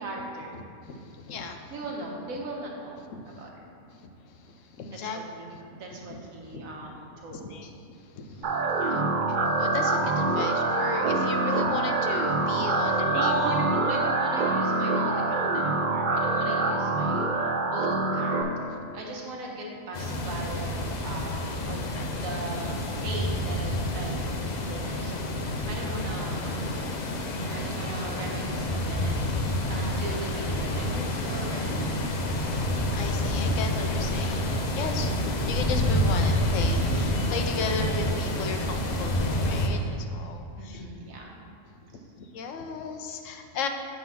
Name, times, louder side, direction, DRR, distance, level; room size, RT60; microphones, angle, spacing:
voice 1, 0.0-0.6 1.7-3.6 5.0-7.7 8.8-9.2 12.8-18.4 18.9-24.1 24.5-26.9 27.2-32.0 40.6-41.4 41.9-42.0, right 2 dB, 80° right, -1 dB, 1.5 m, -38 dB
voice 2, 0.5-1.7 3.1-3.4 3.9-5.2 5.5-5.6 6.1-6.6 7.3-7.7 8.1-13.3 18.8-18.9 21.7-22.0 24.5-24.9 29.4-29.6 32.3-40.8 41.8-41.9 42.2-43.7, left 4 dB, 70° left, 5 dB, 0.9 m, -36 dB
sound 1, 8.4-18.4, right 3 dB, 55° right, 0.5 m, -25 dB
sound 2, 19.9-39.7, left 1 dB, 50° left, 0.5 m, -28 dB
7.6 x 3.9 x 5.7 m, 2.3 s
omnidirectional pair, 1.4 m